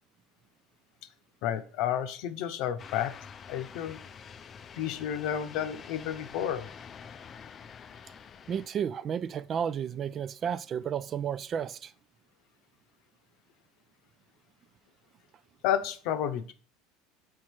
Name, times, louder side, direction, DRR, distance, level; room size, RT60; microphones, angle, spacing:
voice 1, 1.4-3.1 3.5-4.0 4.8-6.7 15.6-16.5, left 10 dB, 60° left, 0.8 m, -31 dB
sound 1, 2.8-8.7, left 7 dB, 35° left, 0.5 m, -47 dB
voice 2, 8.5-11.9, right 8 dB, 40° right, 0.4 m, -32 dB
5.7 x 4.7 x 4.6 m
hypercardioid pair, 80°, 0 cm